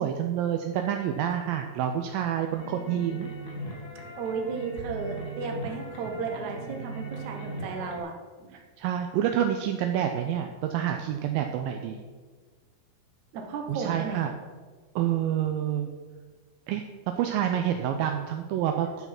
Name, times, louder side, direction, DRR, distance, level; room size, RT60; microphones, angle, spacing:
voice 1, 0.0-3.3 8.5-12.0 13.7-14.3 15.0-15.9 16.7-16.8 17.2-19.1, right 10 dB, 85° right, 5 dB, 2.1 m, -28 dB
sound 1, 2.5-8.0, right 2 dB, 80° left, 0.8 m, -39 dB
voice 2, 4.2-8.1 8.4-8.6 13.3-14.2, right 5 dB, 65° right, 3 dB, 2.0 m, -34 dB
9.6 x 5.7 x 5.8 m, 1.4 s
omnidirectional pair, 4.5 m